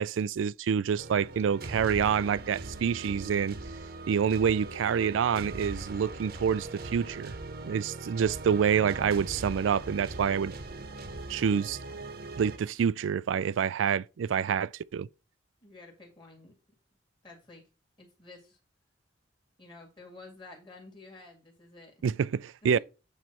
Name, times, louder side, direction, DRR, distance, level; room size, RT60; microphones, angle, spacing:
voice 1, 0.0-3.6 4.1-7.3 7.7-10.5 11.3-11.8 12.4-15.1 22.0-22.8, right 7 dB, 85° right, 0.3 m, -27 dB
sound 1, 1.0-12.6, right 2 dB, 55° right, 0.9 m, -40 dB
voice 2, 15.6-16.5 17.2-17.6 18.0-18.6 19.6-21.9 22.6-22.8, left 2 dB, 25° left, 2.3 m, -50 dB
9.0 x 3.2 x 5.6 m
head